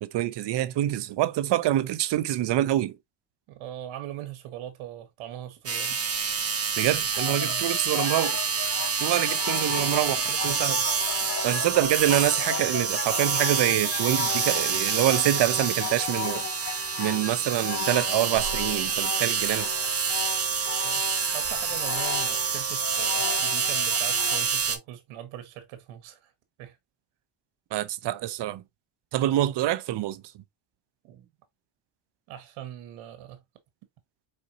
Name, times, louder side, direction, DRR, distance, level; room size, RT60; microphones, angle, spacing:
voice 1, 0.0-3.0 6.8-8.4 9.0-10.8 11.4-19.7 27.7-28.6 29.1-30.4, right 13 dB, 60° right, 0.7 m, -26 dB
voice 2, 3.5-6.0 7.4-7.7 20.8-21.1 21.3-26.3 26.6-26.8 31.0-31.3 32.3-33.4, right 12 dB, 85° right, 1.4 m, -41 dB
sound 1, 5.7-24.8, right 6 dB, 30° right, 1.1 m, -27 dB
sound 2, 7.1-24.4, left 10 dB, 35° left, 0.4 m, -36 dB
4.4 x 4.2 x 2.6 m
cardioid pair, 90°, 48 cm